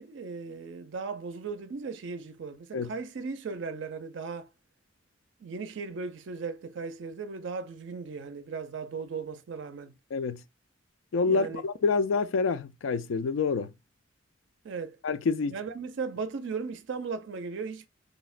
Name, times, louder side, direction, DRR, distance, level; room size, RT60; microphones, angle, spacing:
voice 1, 0.0-4.5 5.4-9.9 11.3-11.6 14.6-15.0 15.5-17.9, right 4 dB, 65° right, 0.4 m, -37 dB
voice 2, 10.1-10.4 11.1-13.7 15.0-15.5, left 4 dB, 80° left, 0.4 m, -27 dB
3.9 x 2.1 x 2.3 m
head